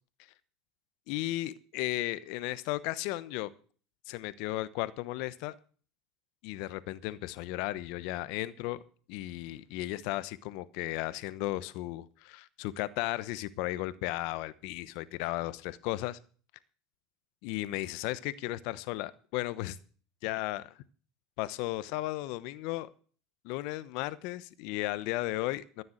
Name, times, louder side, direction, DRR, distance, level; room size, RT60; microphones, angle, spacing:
voice 1, 1.1-3.5 4.1-5.5 6.4-8.8 9.1-16.2 17.4-19.8 20.2-20.7 21.4-22.9 23.4-25.8, left 17 dB, 65° left, 1.0 m, -35 dB
13.5 x 7.0 x 7.9 m
hypercardioid pair, 95°, 0 cm